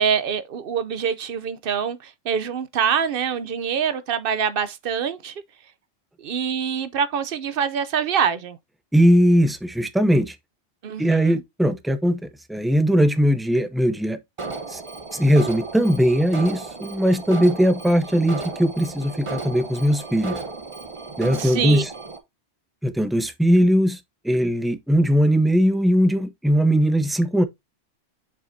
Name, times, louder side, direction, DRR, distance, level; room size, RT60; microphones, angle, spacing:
voice 1, 0.0-5.3 6.2-8.6 10.8-11.4 21.4-21.8, right 7 dB, 55° right, 0.8 m, -25 dB
voice 2, 8.9-10.4 11.0-14.2 14.7-14.8 15.1-20.4 21.2-21.9 22.8-24.0 24.2-27.4, equal, ahead, 0.3 m, -19 dB
Alarm, 14.4-22.2, right 3 dB, 30° right, 1.0 m, -34 dB
7.0 x 5.8 x 2.6 m
omnidirectional pair, 1.2 m